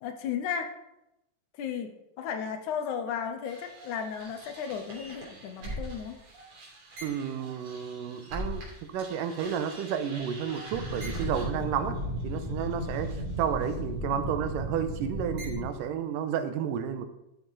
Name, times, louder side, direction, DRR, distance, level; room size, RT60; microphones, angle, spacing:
voice 1, 0.0-0.8 1.6-6.2, left 7 dB, 75° left, 7 dB, 2.2 m, -34 dB
sound 1, 3.5-8.7 9.0-15.7, equal, 65° right, 4.5 m, -37 dB
voice 2, 7.0-12.0 12.2-17.1, right 8 dB, 90° right, 9 dB, 2.5 m, -31 dB
12.0 x 6.9 x 4.7 m, 0.89 s
omnidirectional pair, 3.8 m